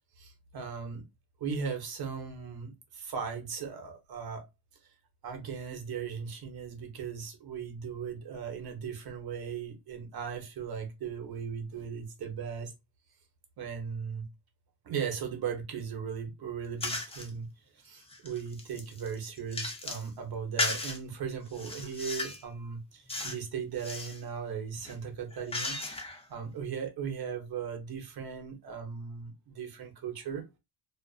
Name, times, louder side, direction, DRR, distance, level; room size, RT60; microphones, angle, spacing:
voice 1, 0.2-1.0 1.4-4.5 5.2-12.7 13.6-14.2 14.8-17.5 17.8-26.0 26.3-30.4, right 6 dB, 50° right, 0.9 m, -37 dB
sound 1, 16.8-17.3 17.9-20.1 20.6-21.0 21.5-22.5 23.1-23.4 23.7-24.2 24.8-26.2, left 2 dB, 15° left, 0.5 m, -36 dB
2.5 x 2.4 x 2.3 m
cardioid pair, 120°, 46 cm